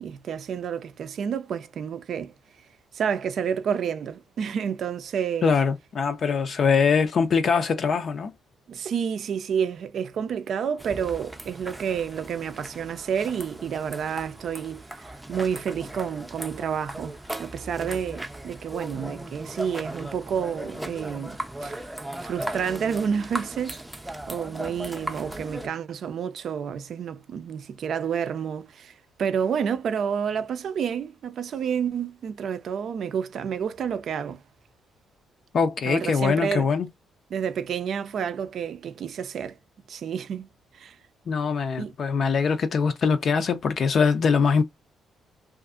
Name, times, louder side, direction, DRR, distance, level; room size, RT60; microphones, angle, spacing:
voice 1, 0.0-2.3 2.9-5.5 8.7-21.8 22.2-23.8 24.3-34.4 35.9-36.7 37.3-39.6 39.9-40.5 40.7-41.0 41.8-41.9, right 7 dB, 60° right, 0.4 m, -29 dB
voice 2, 5.4-8.3 35.5-36.9 41.3-44.6, left 5 dB, 55° left, 0.4 m, -22 dB
sound 1, 10.8-25.7, right 1 dB, 10° right, 0.5 m, -37 dB
2.5 x 2.4 x 2.4 m
cardioid pair, 90°, 0 cm